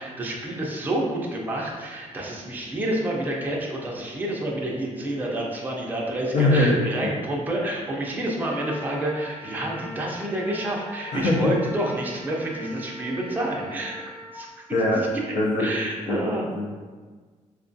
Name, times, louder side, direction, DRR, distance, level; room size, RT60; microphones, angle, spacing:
voice 1, 0.0-14.0 14.3-14.6 15.3-16.5, right 1 dB, 15° right, -2 dB, 0.4 m, -29 dB
voice 2, 6.3-6.8 11.1-11.6 14.7-15.0 15.3-15.7 16.1-16.2 16.6-16.7, left 2 dB, 60° left, -2 dB, 0.5 m, -21 dB
Wind instrument woodwind instrument, 8.4-14.5, equal, 5° left, 1.0 m, -41 dB
4.3 x 2.3 x 2.6 m, 1.4 s
wide cardioid pair, 180°, 13 cm